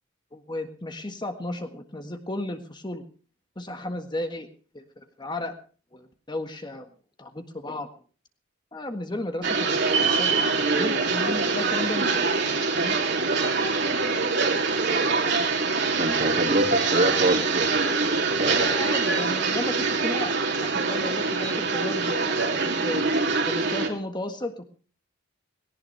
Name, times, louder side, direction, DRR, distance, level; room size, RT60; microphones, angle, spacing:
voice 1, 0.3-3.0 3.5-4.5 4.7-5.5 5.9-6.9 7.2-7.9 8.7-13.0 17.0-17.3 18.5-23.1 23.4-24.7, left 1 dB, 20° left, 6 dB, 1.6 m, -34 dB
sound 1, 9.4-23.9, right 4 dB, 55° right, 2.9 m, -24 dB
voice 2, 16.0-18.0 18.4-18.7, right 1 dB, 35° right, 6 dB, 2.4 m, -26 dB
18.5 x 18.0 x 3.3 m, 0.38 s
head